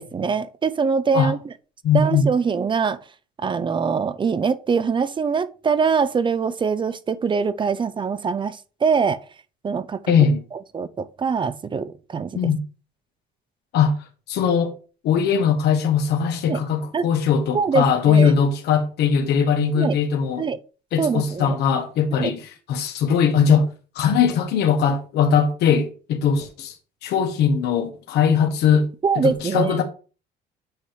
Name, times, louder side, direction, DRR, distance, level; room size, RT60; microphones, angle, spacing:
voice 1, 0.0-1.4 1.9-3.0 3.4-9.2 9.6-10.1 10.7-12.5 16.5-16.6 16.9-17.0 17.5-18.3 19.7-20.0 20.4-20.6 21.0-21.6 22.2-22.3 29.0-29.8, right 5 dB, 30° right, 0.5 m, -23 dB
voice 2, 1.8-2.3 10.1-10.4 12.3-12.6 13.7-14.0 14.3-14.7 15.0-20.5 20.9-22.4 22.7-23.7 23.9-26.7 27.0-28.9 29.1-29.8, left 6 dB, 75° left, 1.4 m, -20 dB
8.6 x 2.9 x 4.9 m
cardioid pair, 110°, 17 cm